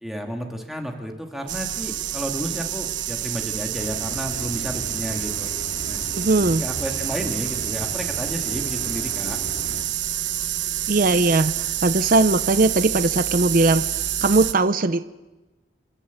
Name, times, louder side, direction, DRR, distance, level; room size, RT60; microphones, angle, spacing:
voice 1, 0.0-5.5 5.9-6.0 6.6-9.4, equal, ahead, 2 dB, 2.1 m, -32 dB
sound 1, 1.5-14.5, right 11 dB, 80° right, 1.0 m, -28 dB
sound 2, 3.7-9.8, left 1 dB, 60° left, 2.1 m, -37 dB
voice 2, 6.1-6.7 10.9-13.9 14.2-15.0, right 2 dB, 45° right, 12 dB, 0.6 m, -19 dB
29.0 x 13.0 x 8.3 m, 1.1 s
head